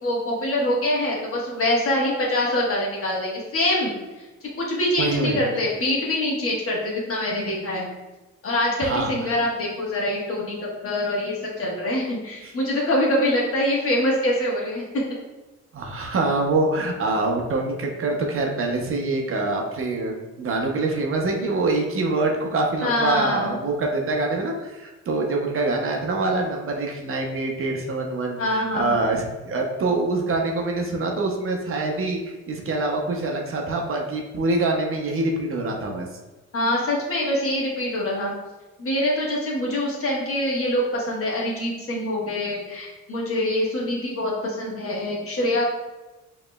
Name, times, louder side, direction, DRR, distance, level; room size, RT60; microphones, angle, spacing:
voice 1, 0.0-7.9 8.4-14.8 22.8-23.6 28.4-29.0 36.5-38.3 38.8-45.6, left 1 dB, 50° left, -3 dB, 1.3 m, -24 dB
voice 2, 5.0-5.4 8.8-9.1 12.4-12.5 15.7-36.1, right 2 dB, 45° right, 1 dB, 0.7 m, -25 dB
4.9 x 3.0 x 2.2 m, 1.1 s
cardioid pair, 90°, 30 cm